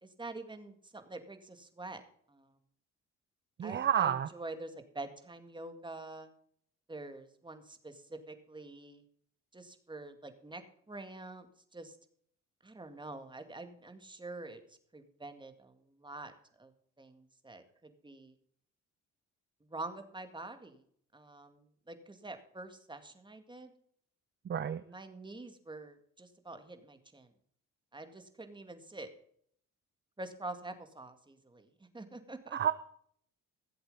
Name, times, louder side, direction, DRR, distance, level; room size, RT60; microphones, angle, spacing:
voice 1, 0.0-2.0 2.3-2.6 3.6-6.3 6.9-9.0 9.5-12.0 12.6-14.6 14.9-16.3 16.6-16.7 17.0-18.3 19.7-20.8 21.1-23.7 24.8-27.3 27.9-29.1 30.2-31.7 31.9-32.6, right 2 dB, 15° right, 7 dB, 2.1 m, -46 dB
voice 2, 3.6-4.3 24.5-24.8 32.5-32.7, right 9 dB, 40° right, 13 dB, 0.6 m, -30 dB
15.5 x 7.9 x 5.5 m, 0.63 s
cardioid pair, 90°, 30 cm